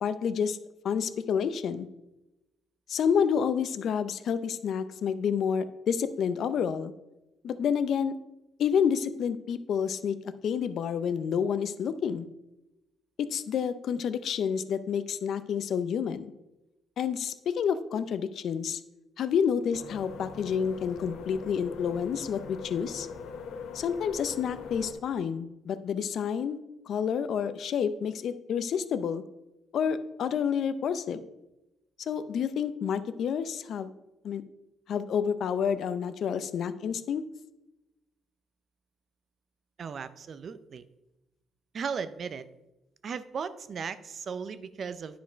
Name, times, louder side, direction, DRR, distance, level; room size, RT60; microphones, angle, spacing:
voice 1, 0.0-0.6 0.8-1.9 2.9-6.9 7.4-8.1 8.6-12.3 13.3-16.3 17.0-18.8 19.2-23.1 23.7-29.2 29.7-31.2 32.1-33.9 34.2-34.4 34.9-37.2, left 7 dB, 65° left, 13 dB, 0.6 m, -29 dB
sound 1, 19.7-24.9, left 5 dB, 85° left, 1.0 m, -41 dB
voice 2, 39.8-40.8 41.7-42.5 43.0-45.2, right 6 dB, 55° right, 14 dB, 0.6 m, -36 dB
10.0 x 5.2 x 5.1 m, 0.97 s
cardioid pair, 90°, 0 cm